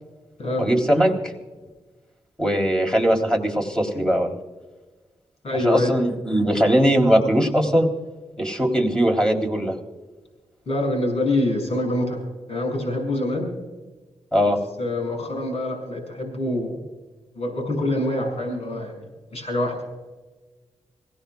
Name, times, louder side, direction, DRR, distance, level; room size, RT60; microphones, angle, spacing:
voice 1, 0.6-1.3 2.4-4.4 5.5-7.9 8.4-9.8 14.3-14.6, equal, 5° left, 1 dB, 3.3 m, -20 dB
voice 2, 5.4-5.9 10.7-12.2 12.5-13.5 14.5-16.8 17.3-19.8, left 1 dB, 70° left, 1 dB, 6.5 m, -25 dB
26.5 x 17.5 x 2.3 m, 1.3 s
wide cardioid pair, 105°, 11 cm